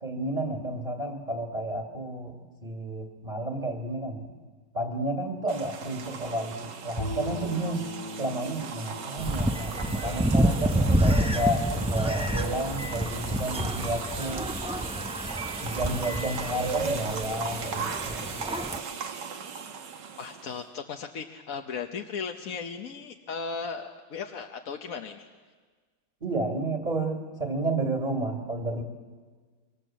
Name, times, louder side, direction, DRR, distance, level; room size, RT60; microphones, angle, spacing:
voice 1, 0.0-4.3 4.7-7.9 8.2-14.6 15.6-18.2 26.2-28.8, right 1 dB, 25° right, 3 dB, 2.1 m, -31 dB
sound 1, 5.5-20.6, right 6 dB, 75° right, 1.9 m, -37 dB
Bowed string instrument, 7.0-11.2, left 1 dB, 15° left, 1.3 m, -39 dB
sound 2, 9.2-18.8, equal, 10° right, 0.4 m, -28 dB
voice 2, 20.2-25.3, left 5 dB, 55° left, 4 dB, 1.3 m, -36 dB
26.0 x 25.0 x 7.5 m, 1.5 s
omnidirectional pair, 1.9 m